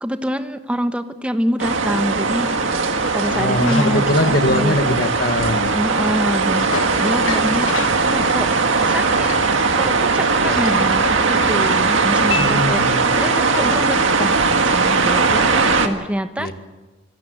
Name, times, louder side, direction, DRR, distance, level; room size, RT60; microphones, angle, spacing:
voice 1, 0.0-2.5 3.1-4.8 5.7-7.7 8.1-8.5 8.8-9.3 9.7-16.5, equal, 5° right, 8 dB, 1.1 m, -25 dB
sound 1, 1.6-15.9, right 4 dB, 70° right, 1.8 m, -19 dB
sound 2, 3.0-13.8, left 4 dB, 85° left, 1.7 m, -33 dB
voice 2, 3.3-5.7 12.4-13.0 16.4-16.5, left 1 dB, 50° left, 8 dB, 1.8 m, -21 dB
25.0 x 16.5 x 8.0 m, 1.2 s
head